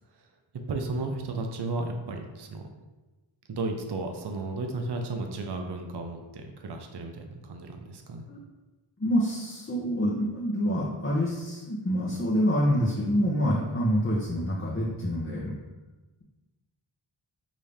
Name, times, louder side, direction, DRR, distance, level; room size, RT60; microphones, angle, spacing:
voice 1, 0.7-2.7 3.5-8.3, right 3 dB, 55° right, 4 dB, 0.6 m, -34 dB
voice 2, 9.0-15.6, equal, 25° left, -5 dB, 0.8 m, -26 dB
5.1 x 2.7 x 3.4 m, 1.2 s
wide cardioid pair, 50°, 50 cm